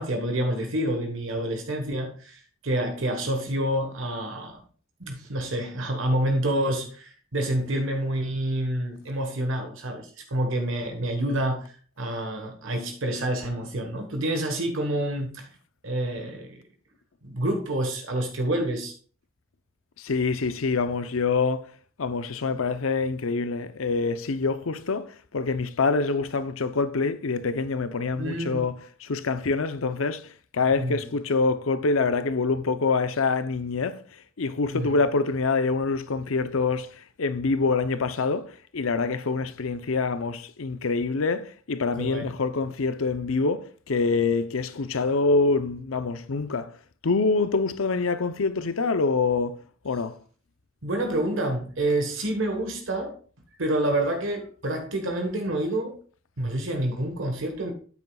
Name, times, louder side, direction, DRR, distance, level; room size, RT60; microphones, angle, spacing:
voice 1, 0.0-4.5 5.1-15.5 15.8-16.6 17.2-18.9 28.2-28.7 30.8-31.0 34.7-34.9 42.0-42.3 50.8-53.2 53.6-56.0 56.4-57.7, right 1 dB, 65° right, 1.3 m, -28 dB
voice 2, 20.0-21.6 22.0-25.1 25.3-28.7 29.0-30.3 30.5-34.0 34.4-36.9 37.2-46.7 47.0-49.6 49.8-50.1, left 4 dB, 75° left, 0.7 m, -25 dB
9.3 x 8.3 x 2.3 m
head